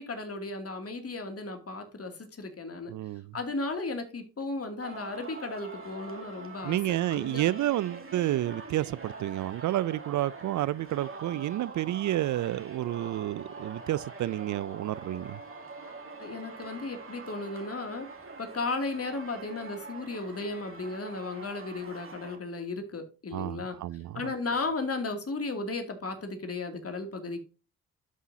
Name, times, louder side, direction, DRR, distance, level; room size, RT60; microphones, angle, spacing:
voice 1, 0.0-2.9 3.3-6.8 7.1-7.5 16.2-18.1 18.4-23.8 24.1-27.4, left 3 dB, 45° left, 2.5 m, -35 dB
voice 2, 2.9-3.3 6.6-15.4 23.3-24.3, right 14 dB, 60° right, 0.4 m, -30 dB
Singing, 4.8-22.4, right 3 dB, 40° right, 2.5 m, -44 dB
12.5 x 5.6 x 2.7 m
supercardioid pair, 55°, 34 cm